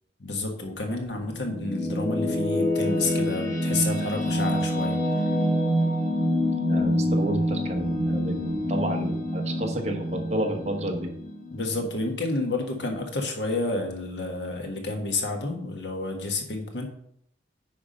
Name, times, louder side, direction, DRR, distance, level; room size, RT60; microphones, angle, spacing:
voice 1, 0.2-5.3 11.5-16.8, left 2 dB, 85° left, 3 dB, 1.5 m, -30 dB
sound 1, 1.2-12.4, equal, 45° left, 1.6 m, -26 dB
voice 2, 6.7-11.2, right 1 dB, 40° right, 2 dB, 1.2 m, -30 dB
9.5 x 3.6 x 5.2 m, 0.70 s
head